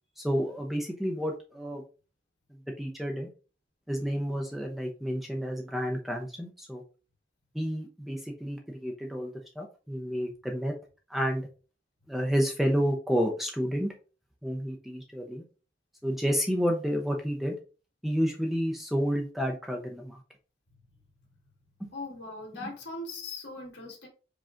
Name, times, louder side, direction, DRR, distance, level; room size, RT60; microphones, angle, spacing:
voice 1, 0.2-1.8 2.5-3.3 3.9-6.8 7.5-10.7 11.1-11.5 12.1-13.9 14.4-15.4 16.0-17.5 18.0-20.2 21.8-21.9 22.6-22.7, equal, ahead, 1 dB, 0.5 m, -30 dB
voice 2, 21.9-24.1, left 2 dB, 75° left, -1 dB, 2.0 m, -40 dB
5.0 x 2.3 x 3.7 m, 0.34 s
head